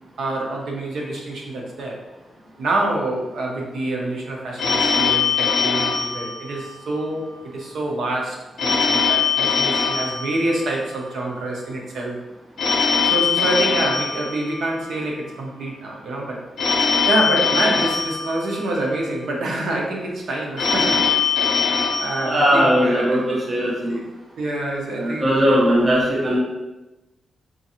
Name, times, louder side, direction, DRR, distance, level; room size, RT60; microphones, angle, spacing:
voice 1, 0.2-2.0 2.6-12.2 13.0-16.4 17.1-21.3 22.0-24.0 24.4-26.1, right 2 dB, 75° right, -1 dB, 0.7 m, -26 dB
Telephone, 4.6-7.1 8.6-11.1 12.6-15.1 16.6-19.1 20.6-23.1, left 5 dB, 70° left, 0.5 m, -22 dB
voice 2, 22.2-24.0 24.9-26.4, equal, 30° right, -6 dB, 0.8 m, -19 dB
3.8 x 2.5 x 2.8 m, 1.0 s
wide cardioid pair, 125°, 0 cm